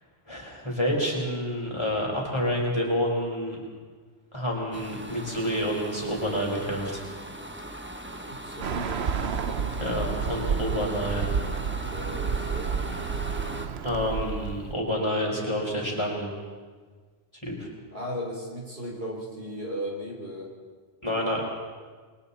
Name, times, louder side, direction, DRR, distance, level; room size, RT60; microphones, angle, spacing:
voice 1, 0.3-3.6 4.3-7.1 9.8-11.3 13.8-16.3 17.4-17.7 21.0-21.4, equal, 25° left, -2 dB, 5.0 m, -28 dB
sound 1, 4.7-13.7, right 1 dB, 10° right, 1.2 m, -39 dB
voice 2, 8.2-9.0 11.9-12.8 17.9-20.5, equal, 60° right, -1 dB, 4.4 m, -36 dB
Bird, 8.6-14.7, right 6 dB, 80° right, 1.1 m, -30 dB
29.5 x 22.5 x 4.2 m, 1.5 s
omnidirectional pair, 1.1 m